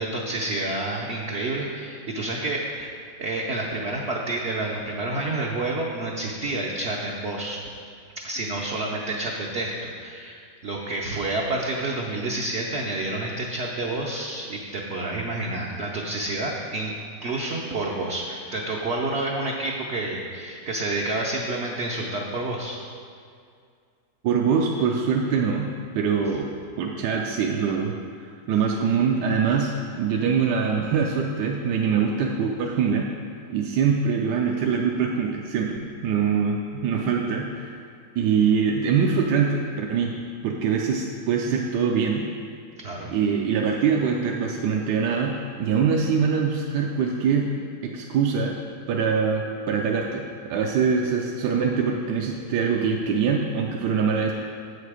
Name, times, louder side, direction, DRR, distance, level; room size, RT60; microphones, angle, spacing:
voice 1, 0.0-2.9 3.2-7.6 8.2-16.9 17.2-22.8 42.8-43.1, right 2 dB, 60° right, -2 dB, 0.7 m, -29 dB
voice 2, 24.2-25.7 25.9-26.5 26.8-28.0 28.2-29.7 30.0-33.1 33.5-37.8 38.2-40.2 40.4-42.3 43.1-47.5 47.8-48.6 48.9-50.2 50.5-54.3, right 6 dB, 75° right, 0 dB, 1.2 m, -23 dB
7.9 x 6.7 x 4.9 m, 2.2 s
omnidirectional pair, 1.9 m